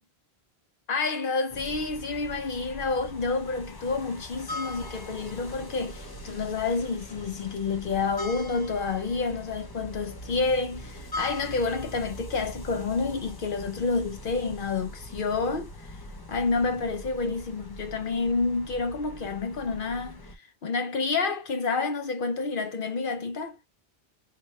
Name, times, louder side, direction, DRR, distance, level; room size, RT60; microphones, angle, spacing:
voice 1, 0.9-15.9 16.3-20.3 20.6-23.6, left 4 dB, 60° left, 0.8 m, -29 dB
sound 1, 1.5-20.4, left 1 dB, 35° left, 0.4 m, -41 dB
4.1 x 2.2 x 3.1 m
omnidirectional pair, 1.1 m